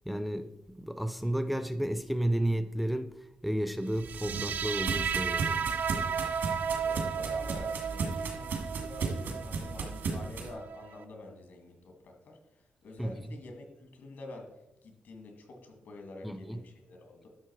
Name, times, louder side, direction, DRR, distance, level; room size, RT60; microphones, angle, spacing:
voice 1, 0.1-3.1 3.4-5.7 13.0-13.1 16.2-16.6, right 1 dB, ahead, 0.4 m, -32 dB
sound 1, 3.9-10.5, right 4 dB, 85° right, 2.1 m, -36 dB
sound 2, 4.0-11.0, right 7 dB, 60° right, 0.5 m, -34 dB
voice 2, 6.8-12.4 12.8-14.5 14.8-17.3, left 2 dB, 80° left, 2.2 m, -47 dB
11.0 x 6.5 x 4.6 m
wide cardioid pair, 170°, 3 cm